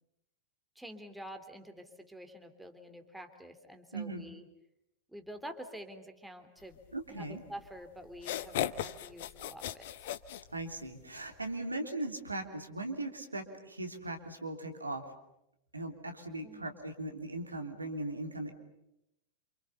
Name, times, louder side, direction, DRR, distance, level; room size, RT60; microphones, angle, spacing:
voice 1, 0.7-4.5 5.1-6.8 7.1-10.1 16.4-16.8, equal, 5° right, 6 dB, 3.2 m, -48 dB
voice 2, 3.9-4.2 6.9-7.4 10.5-15.0 15.7-18.5, right 2 dB, 80° right, 6 dB, 3.1 m, -39 dB
sound 1, 7.6-7.7 8.1-11.0, left 12 dB, 55° left, 1.2 m, -37 dB
28.5 x 28.0 x 6.9 m, 0.85 s
figure-of-eight pair, 90°, 0 cm